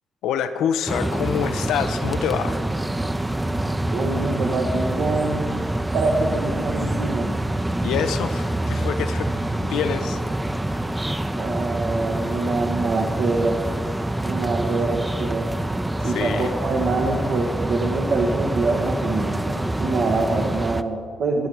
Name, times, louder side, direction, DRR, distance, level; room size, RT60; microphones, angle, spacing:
voice 1, 0.2-2.6 7.8-10.2 10.7-10.9 16.0-16.5, left 8 dB, 75° left, 10 dB, 0.6 m, -26 dB
sound 1, 0.9-20.8, right 1 dB, 15° right, 0.6 m, -26 dB
voice 2, 3.9-5.5 5.9-7.3 11.3-13.7 14.2-15.5 16.0-21.5, right 3 dB, 65° right, 0 dB, 1.2 m, -25 dB
17.0 x 9.7 x 4.7 m, 2.2 s
hypercardioid pair, 45°, 0 cm